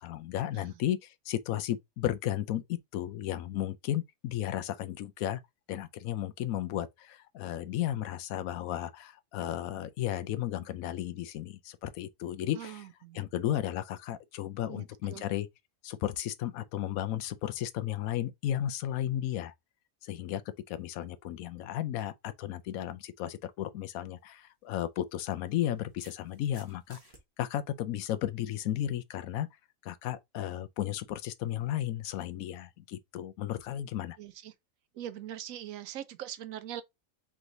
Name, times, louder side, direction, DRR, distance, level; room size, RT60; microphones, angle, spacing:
voice 1, 0.0-5.4 5.7-12.8 13.1-15.5 15.8-19.5 20.0-20.4 20.7-27.0 27.4-29.5 29.8-34.2, left 12 dB, 85° left, 1.0 m, -34 dB
voice 2, 12.5-13.2 14.7-15.2 34.2-34.5 34.9-36.8, right 11 dB, 75° right, 1.0 m, -42 dB
sound 1, 24.0-24.2 25.3-27.2, right 2 dB, 30° right, 1.1 m, -57 dB
3.5 x 3.1 x 3.8 m
omnidirectional pair, 1.5 m